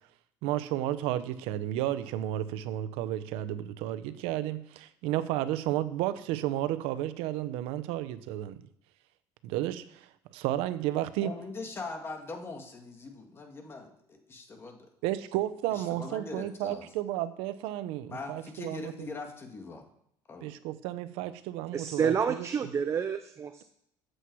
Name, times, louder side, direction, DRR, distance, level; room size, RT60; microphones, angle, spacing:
voice 1, 0.4-8.6 9.4-11.3 15.0-19.1 20.4-22.5, right 13 dB, 80° right, 13 dB, 0.9 m, -32 dB
voice 2, 11.2-14.9 15.7-16.9 18.1-19.9 20.3-20.5, left 3 dB, 25° left, 3 dB, 1.9 m, -41 dB
voice 3, 21.7-23.6, right 7 dB, 30° right, 9 dB, 0.7 m, -29 dB
14.5 x 7.9 x 4.7 m, 0.73 s
cardioid pair, 135°, 10 cm